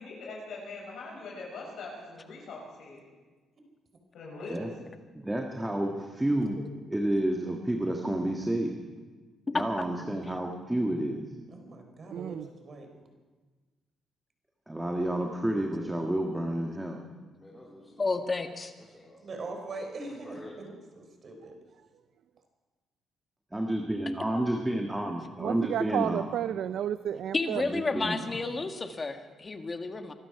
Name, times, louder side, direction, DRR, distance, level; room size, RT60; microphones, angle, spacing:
voice 1, 0.0-3.0 4.1-4.6, left 3 dB, 75° left, -3 dB, 7.0 m, -42 dB
voice 2, 5.1-6.6 6.9-8.8 9.5-11.2 14.7-17.0 23.5-26.3 27.5-28.4, right 1 dB, 10° right, 1 dB, 1.6 m, -30 dB
voice 3, 9.5-10.1 18.0-18.7 27.3-30.1, left 3 dB, 30° left, 6 dB, 1.5 m, -31 dB
voice 4, 11.5-12.9 19.2-20.4 21.0-21.5, right 3 dB, 45° right, 4 dB, 3.7 m, -41 dB
voice 5, 12.1-12.5 25.4-27.6, right 10 dB, 75° right, 13 dB, 0.4 m, -31 dB
voice 6, 17.4-18.5 18.7-20.7, left 1 dB, 10° left, -5 dB, 3.4 m, -51 dB
24.0 x 12.5 x 4.8 m, 1.3 s
cardioid pair, 90°, 0 cm